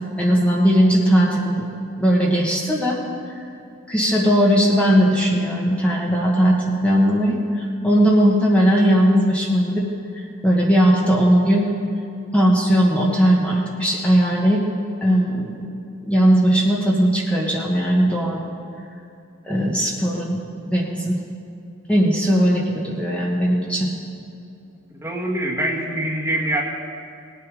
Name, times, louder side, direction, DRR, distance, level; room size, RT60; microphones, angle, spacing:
voice 1, 0.0-1.6 2.0-3.0 3.9-9.8 10.1-11.7 12.3-14.6 15.0-15.7 16.0-18.5 19.4-21.2 21.9-23.9, equal, 5° left, -3 dB, 1.4 m, -18 dB
voice 2, 25.0-26.6, right 1 dB, 15° right, -2 dB, 1.6 m, -24 dB
19.0 x 8.6 x 5.0 m, 2.6 s
head